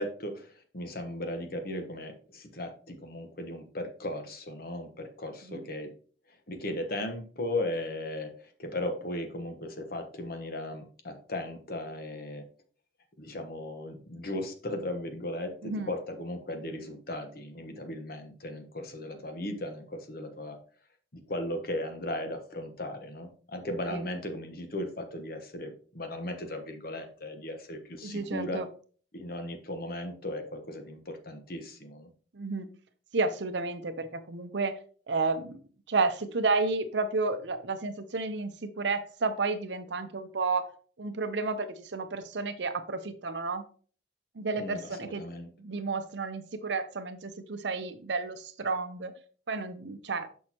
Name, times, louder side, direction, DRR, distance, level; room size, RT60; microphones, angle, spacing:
voice 1, 0.0-5.9 6.5-12.4 13.2-20.6 21.1-28.6 29.1-32.1 44.6-45.5, left 1 dB, 50° left, 6 dB, 1.2 m, -37 dB
voice 2, 28.0-28.7 32.3-32.7 33.1-34.8 35.1-35.6 35.9-40.7 41.0-43.6 44.3-45.2 45.6-49.1 49.5-50.3, right 3 dB, 65° right, 10 dB, 0.7 m, -31 dB
6.3 x 6.2 x 2.9 m, 0.42 s
head